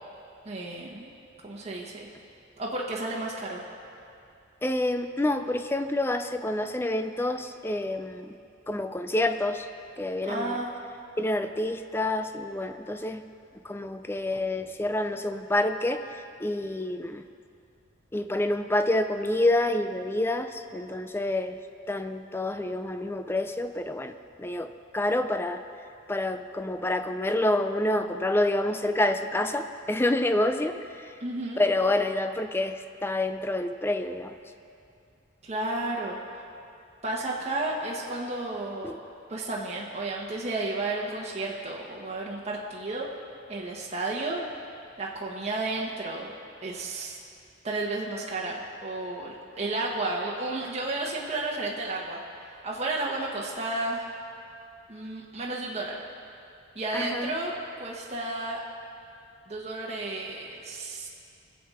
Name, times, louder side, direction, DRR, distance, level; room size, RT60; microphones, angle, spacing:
voice 1, 0.4-1.1 1.4-2.1 2.6-3.6 10.3-10.7 31.2-31.6 35.4-36.4 37.0-39.0 39.3-43.1 43.5-44.4 45.0-46.3 46.6-47.2 47.6-52.2 52.6-54.1 54.9-56.0 56.7-58.6 59.5-61.1, right 2 dB, 35° right, -4 dB, 1.2 m, -32 dB
voice 2, 4.6-8.4 8.7-9.7 10.0-10.6 11.2-13.2 13.6-17.2 18.1-21.6 21.9-24.1 24.4-25.6 26.1-31.1 31.6-34.4 38.8-38.9 56.9-57.3, left 1 dB, 10° left, 8 dB, 0.4 m, -28 dB
21.0 x 7.7 x 4.3 m, 2.5 s
head